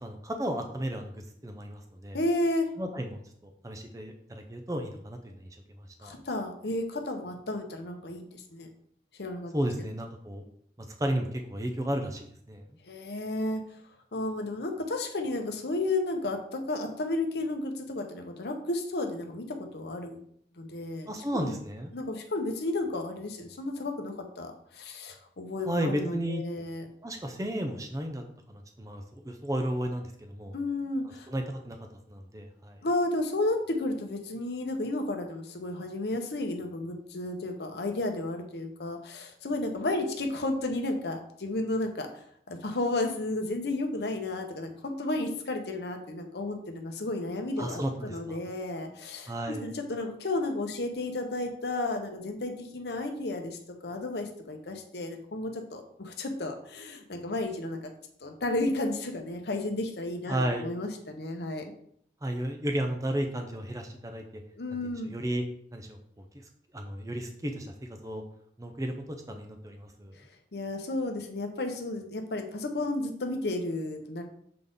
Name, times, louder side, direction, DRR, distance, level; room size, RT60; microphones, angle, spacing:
voice 1, 0.0-2.2 2.8-3.2 3.6-5.5 5.8-6.2 9.5-10.4 11.0-12.6 21.1-21.9 25.7-26.4 27.0-30.6 31.0-31.8 32.1-32.8 47.6-48.4 49.3-49.7 60.3-60.7 62.2-64.2 64.8-65.4 65.7-66.0 66.7-67.7 68.0-68.2 68.6-70.2, right 1 dB, 20° right, 4 dB, 0.6 m, -33 dB
voice 2, 2.1-2.7 6.0-8.7 9.2-9.5 12.9-13.6 14.1-20.2 20.6-21.5 21.9-26.8 30.5-31.3 32.8-57.9 58.2-61.7 64.6-65.1 70.2-70.3 70.5-74.2, left 2 dB, 70° left, 4 dB, 0.8 m, -32 dB
6.7 x 4.0 x 3.5 m, 0.66 s
head